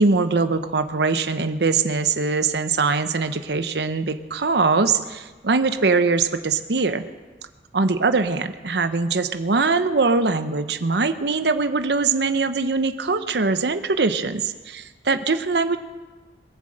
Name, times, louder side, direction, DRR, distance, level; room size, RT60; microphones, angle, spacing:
voice 1, 0.0-7.0 7.7-15.8, right 4 dB, 75° right, 10 dB, 0.8 m, -22 dB
22.0 x 7.5 x 7.8 m, 1.3 s
head